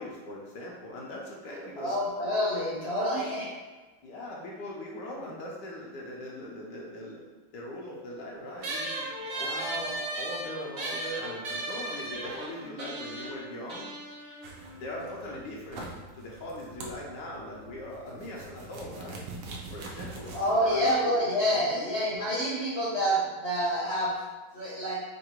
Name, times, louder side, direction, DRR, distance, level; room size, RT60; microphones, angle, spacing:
voice 1, 0.0-2.0 4.0-7.2 7.5-9.8 10.2-13.9 14.8-19.2 19.7-21.1 21.5-22.0, left 1 dB, 80° left, -3 dB, 1.4 m, -40 dB
voice 2, 1.8-3.5 9.4-10.1 20.3-24.2 24.5-24.9, equal, 45° left, -7 dB, 1.0 m, -28 dB
sound 1, 8.6-15.4, right 1 dB, 55° right, 0.8 m, -36 dB
sound 2, 14.4-20.9, right 2 dB, 75° right, 1.3 m, -44 dB
3.8 x 2.6 x 4.4 m, 1.2 s
omnidirectional pair, 1.9 m